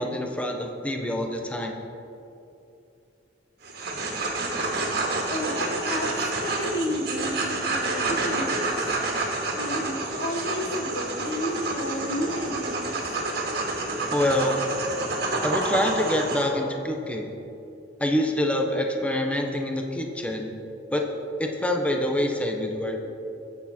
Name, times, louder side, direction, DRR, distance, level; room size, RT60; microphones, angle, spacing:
voice 1, 0.0-1.7 14.1-14.5 15.4-17.3 18.0-20.5 20.9-21.0 21.4-23.0, left 1 dB, 5° left, 2 dB, 1.1 m, -26 dB
sound 1, 3.6-16.4, right 2 dB, 60° right, 2.2 m, -28 dB
voice 2, 5.3-9.0 9.5-13.2, left 1 dB, 85° left, 2 dB, 1.8 m, -32 dB
20.5 x 8.5 x 4.5 m, 2.8 s
head